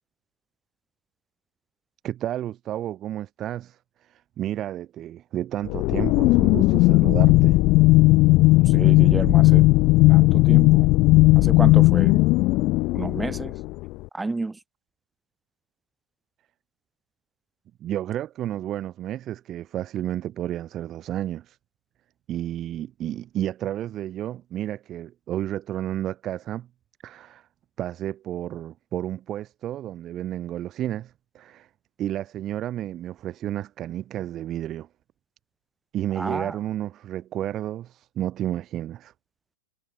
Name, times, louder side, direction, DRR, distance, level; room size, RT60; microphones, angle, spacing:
voice 1, 2.0-7.6 17.8-21.6 22.3-26.7 27.0-27.5 27.8-31.7 32.0-34.9 35.9-39.1, right 12 dB, 30° right, 6.9 m, -31 dB
sound 1, 5.7-13.9, left 21 dB, 40° left, 0.4 m, -17 dB
voice 2, 8.7-9.7 10.1-10.9 11.4-12.2 12.9-13.5 14.1-14.6 36.2-36.6, right 3 dB, 10° right, 4.0 m, -30 dB
hypercardioid pair, 115°, 0 cm